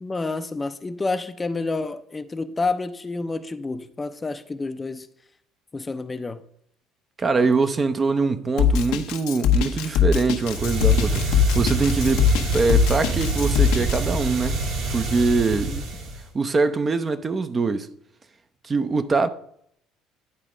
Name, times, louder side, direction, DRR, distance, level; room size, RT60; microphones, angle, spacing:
voice 1, 0.0-5.1 5.7-6.4 15.5-15.8, left 3 dB, 20° left, 0.5 m, -29 dB
voice 2, 7.2-14.6 14.9-15.7 16.3-17.9 18.6-19.3, right 4 dB, 30° right, 0.6 m, -23 dB
Drum kit, 8.6-14.0, left 7 dB, 85° left, 0.9 m, -21 dB
sound 1, 10.4-16.3, right 2 dB, 65° right, 2.2 m, -26 dB
9.8 x 4.2 x 5.0 m
supercardioid pair, 90°, 0 cm